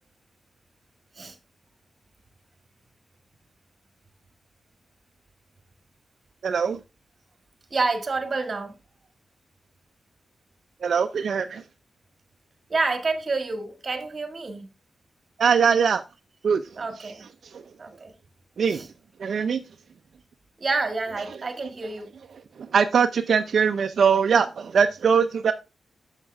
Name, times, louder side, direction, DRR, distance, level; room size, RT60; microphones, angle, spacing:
voice 1, 6.4-6.8 10.8-11.6 15.4-16.0 16.4-16.6 18.6-18.8 19.2-19.6 22.7-25.5, right 6 dB, 60° right, 0.6 m, -21 dB
voice 2, 7.7-8.7 12.7-14.7 16.8-17.2 17.8-18.1 18.7-18.9 20.6-22.1, right 3 dB, 35° right, 1.8 m, -28 dB
11.5 x 7.4 x 3.4 m
wide cardioid pair, 170°, 0 cm